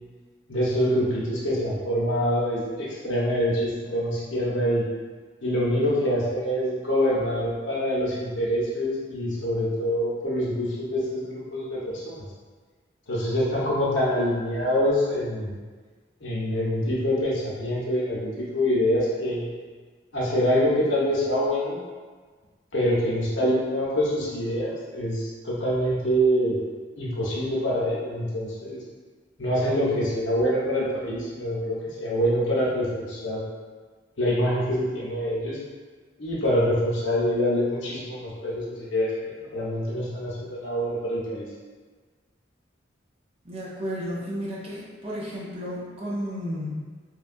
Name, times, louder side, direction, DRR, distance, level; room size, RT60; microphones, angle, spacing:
voice 1, 0.5-4.8 5.4-12.2 13.1-15.6 16.2-19.6 20.1-21.8 22.7-26.6 27.0-28.8 29.4-33.4 34.2-35.6 36.2-39.1 39.4-41.5, equal, 80° left, -6 dB, 0.8 m, -25 dB
voice 2, 43.4-46.8, equal, 30° right, -6 dB, 0.5 m, -32 dB
3.0 x 2.2 x 2.5 m, 1.5 s
head